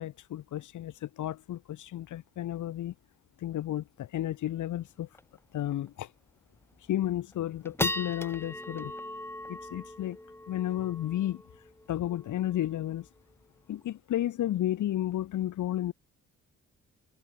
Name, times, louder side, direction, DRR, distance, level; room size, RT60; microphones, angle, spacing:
voice 1, 0.0-2.9 3.4-5.1 5.5-6.1 6.9-8.9 9.5-10.2 10.5-11.4 11.9-13.1 13.7-15.9, left 12 dB, 75° left, 5.4 m, -32 dB
sound 1, 4.3-4.4 4.7-4.8 5.1-5.4 5.9-6.0 6.5-6.9 7.3-13.9, left 1 dB, 10° left, 7.2 m, -39 dB
cardioid pair, 90°, 30 cm